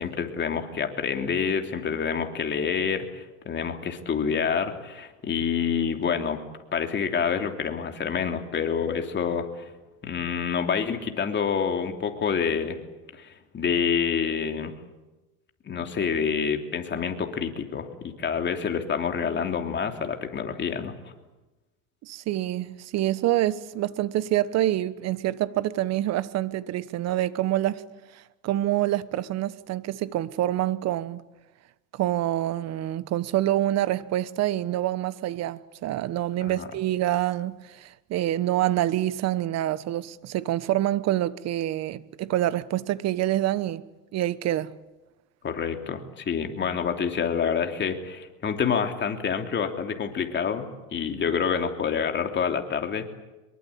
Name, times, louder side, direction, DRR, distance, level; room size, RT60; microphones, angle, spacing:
voice 1, 0.0-6.4 6.7-9.7 10.0-12.8 13.1-14.7 15.6-20.9 36.4-36.7 45.4-53.2, left 6 dB, 25° left, 3.1 m, -27 dB
voice 2, 22.0-27.8 28.4-31.2 31.9-43.8 44.1-44.7, right 13 dB, 35° right, 1.2 m, -26 dB
24.5 x 23.0 x 8.7 m
supercardioid pair, 120°, 44 cm